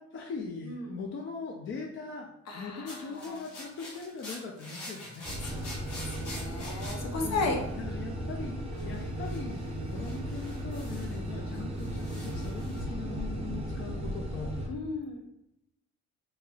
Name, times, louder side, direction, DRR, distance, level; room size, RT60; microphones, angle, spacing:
voice 1, 0.0-5.3 7.2-14.5, left 4 dB, 40° left, 1 dB, 0.4 m, -40 dB
voice 2, 0.6-1.0 2.5-3.4 5.4-7.6 8.7-9.1 14.7-15.2, left 3 dB, 60° left, 1 dB, 0.8 m, -35 dB
sound 1, 2.9-8.1 8.7-11.3 11.5-12.8, left 1 dB, 85° left, 1.2 m, -46 dB
sound 2, 5.2-14.7, right 1 dB, 20° right, 0.6 m, -36 dB
3.0 x 2.8 x 2.3 m, 0.85 s
cardioid pair, 90°, 30 cm